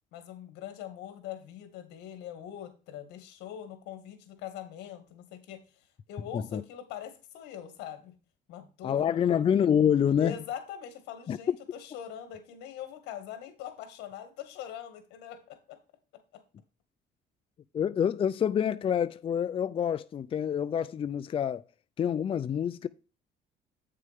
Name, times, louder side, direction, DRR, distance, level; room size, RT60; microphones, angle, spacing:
voice 1, 0.1-5.6 6.1-8.1 8.5-9.4 10.2-15.8 16.3-16.4, left 10 dB, 90° left, 2.0 m, -42 dB
voice 2, 8.8-10.3 11.3-11.6 17.7-21.6 22.0-22.9, left 8 dB, 35° left, 0.4 m, -27 dB
8.9 x 6.7 x 3.5 m
cardioid pair, 110°, 17 cm